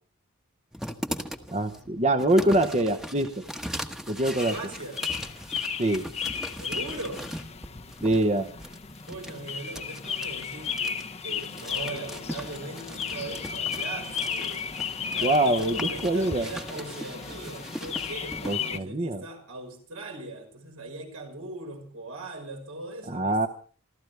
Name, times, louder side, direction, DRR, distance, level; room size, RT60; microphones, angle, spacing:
sound 1, 0.7-18.6, equal, ahead, 1.1 m, -40 dB
voice 1, 1.5-3.4 4.1-4.6 5.8-6.0 8.0-8.5 15.2-16.5 18.4-19.2 23.1-23.5, right 1 dB, 30° right, 8 dB, 0.9 m, -24 dB
sound 2, 4.4-18.8, left 7 dB, 30° left, 0.8 m, -34 dB
voice 2, 4.4-5.1 6.5-7.4 9.1-14.7 15.1-23.5, right 2 dB, 85° right, 3 dB, 5.4 m, -40 dB
27.5 x 14.5 x 3.4 m, 0.41 s
head